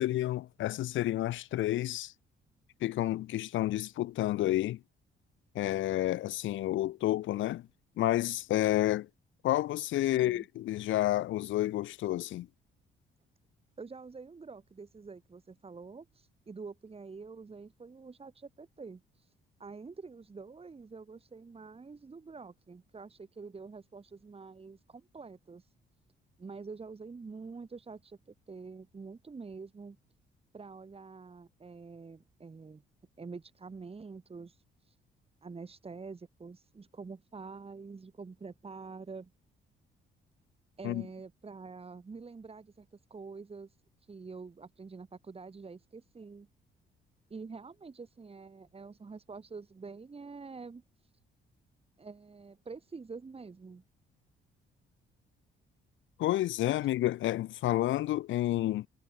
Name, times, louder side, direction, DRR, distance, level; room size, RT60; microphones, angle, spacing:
voice 1, 0.0-2.1 2.8-4.8 5.5-7.7 8.0-9.1 9.4-12.5 40.8-41.0 56.2-58.9, left 14 dB, 75° left, 0.7 m, -30 dB
voice 2, 10.1-10.5 13.8-19.3 19.6-25.7 26.4-30.0 30.5-32.8 33.2-34.9 35.4-39.3 40.8-43.7 44.1-46.5 47.3-50.8 52.0-53.8, right 4 dB, 30° right, 3.2 m, -47 dB
cardioid pair, 90°, 20 cm